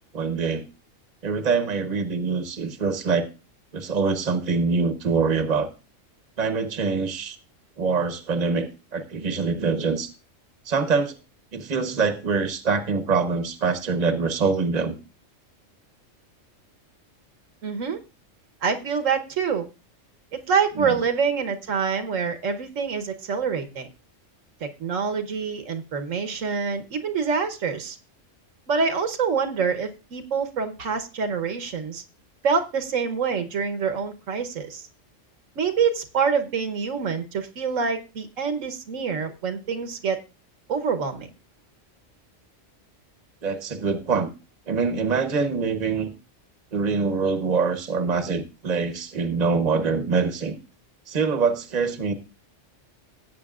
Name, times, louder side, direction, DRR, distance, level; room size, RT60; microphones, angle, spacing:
voice 1, 0.1-0.7 1.2-3.3 3.7-5.7 6.4-7.4 7.8-10.1 10.7-11.1 11.5-15.0 20.8-21.0 43.4-44.3 44.7-46.1 46.7-50.5 51.1-52.1, right 4 dB, 35° right, 9 dB, 1.1 m, -24 dB
voice 2, 17.6-18.0 18.6-19.7 20.5-23.9 24.6-28.0 28.7-32.0 32.4-34.8 35.6-40.2 40.7-41.3, right 5 dB, 75° right, 8 dB, 1.4 m, -26 dB
17.0 x 8.3 x 2.4 m, 0.30 s
omnidirectional pair, 1.3 m